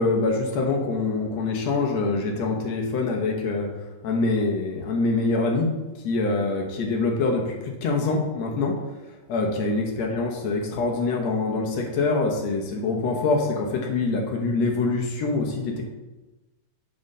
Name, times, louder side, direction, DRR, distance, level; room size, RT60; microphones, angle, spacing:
voice 1, 0.0-8.8 9.3-15.8, left 3 dB, 65° left, 1 dB, 2.0 m, -25 dB
7.7 x 4.3 x 5.4 m, 1.1 s
omnidirectional pair, 3.6 m